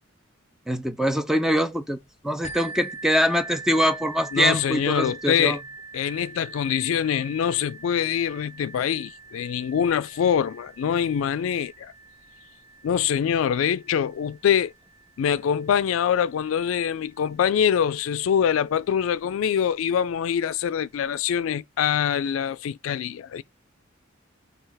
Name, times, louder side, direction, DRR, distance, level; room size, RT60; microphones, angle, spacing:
voice 1, 0.7-2.0 2.2-5.6, equal, ahead, 0.4 m, -23 dB
sound 1, 2.4-18.0 18.8-18.9 19.4-19.5, right 3 dB, 30° left, 0.8 m, -44 dB
voice 2, 4.3-5.6 5.9-11.9 12.8-14.7 15.2-23.4, left 8 dB, 80° left, 0.3 m, -24 dB
5.5 x 2.3 x 3.3 m
head